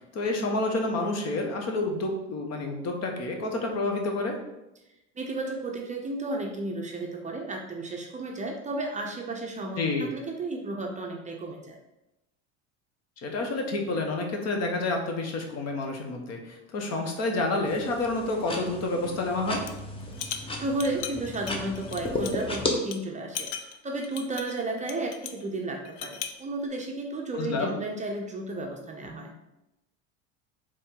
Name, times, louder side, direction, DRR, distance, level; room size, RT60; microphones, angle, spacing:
voice 1, 0.1-4.4 9.8-10.1 13.2-19.6 27.3-27.8, left 2 dB, 45° left, 3 dB, 1.0 m, -29 dB
voice 2, 5.2-11.8 20.6-29.3, right 2 dB, 20° right, 1 dB, 0.6 m, -33 dB
sound 1, 17.7-22.7, left 2 dB, 15° left, 0.8 m, -34 dB
sound 2, 19.5-19.8 20.1-22.6 22.9-23.0 23.3-25.4 25.8-26.4, left 8 dB, 80° left, 0.6 m, -38 dB
4.3 x 3.2 x 3.7 m, 0.92 s
supercardioid pair, 105°, 35 cm